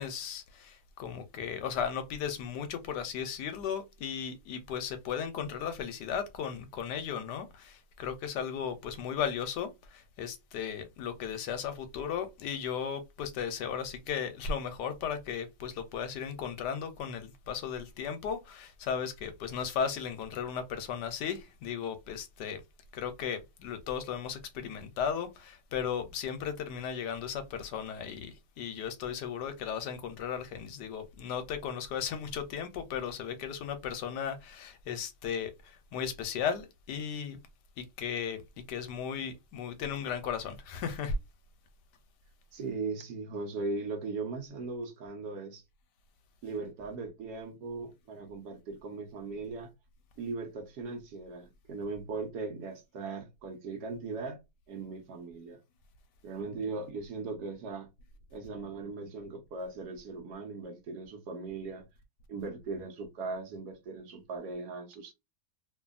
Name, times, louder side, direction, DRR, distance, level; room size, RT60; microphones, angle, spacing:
voice 1, 0.0-22.6 22.9-37.4 37.8-38.4 38.7-41.1, left 7 dB, 75° left, 1.1 m, -36 dB
voice 2, 42.5-45.6 46.4-49.7 50.2-54.4 54.7-55.6 56.2-57.9 58.3-61.9 62.3-65.1, right 3 dB, 70° right, 1.2 m, -38 dB
2.7 x 2.6 x 2.3 m
omnidirectional pair, 2.0 m